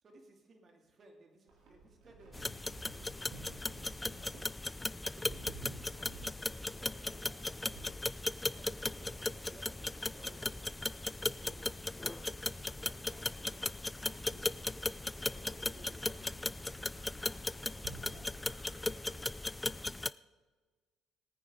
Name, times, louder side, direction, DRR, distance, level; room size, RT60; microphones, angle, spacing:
voice 1, 0.0-2.5 2.9-3.4 4.0-4.4 5.1-5.6 6.0-7.9 8.5-10.8 11.4-14.4 15.3-16.4, right 2 dB, 45° right, 2 dB, 2.6 m, -60 dB
Livestock farm animals working animals, 1.5-19.2, right 3 dB, 70° right, 3.3 m, -56 dB
sound 1, 2.3-20.1, left 2 dB, 15° left, 0.4 m, -37 dB
19.5 x 9.3 x 3.8 m, 1.4 s
hypercardioid pair, 55°, 0 cm